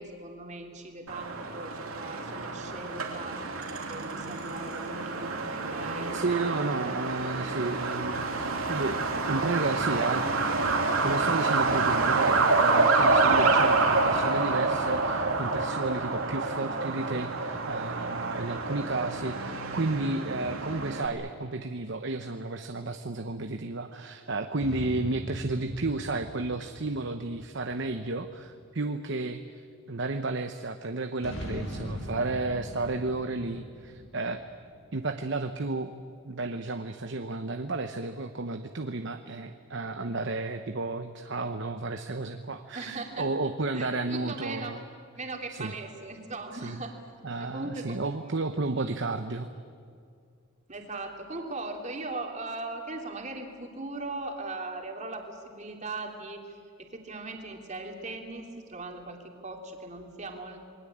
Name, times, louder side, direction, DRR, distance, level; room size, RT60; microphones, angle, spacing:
voice 1, 0.0-6.7 42.7-43.3 43.7-44.7 45.2-46.9 47.4-48.3 50.7-60.6, right 2 dB, 35° right, 2 dB, 3.0 m, -39 dB
Truck, 1.1-21.1, right 3 dB, 80° right, 2.9 m, -27 dB
voice 2, 6.1-9.0 9.3-10.4 11.0-29.6 29.9-34.4 34.9-35.9 36.2-44.8 45.5-45.7 46.5-46.8 47.2-49.5, right 3 dB, 55° right, 7 dB, 1.0 m, -32 dB
sound 1, 24.6-28.3 31.2-35.0, equal, 75° left, 5.2 m, -41 dB
28.0 x 21.5 x 8.7 m, 2.3 s
head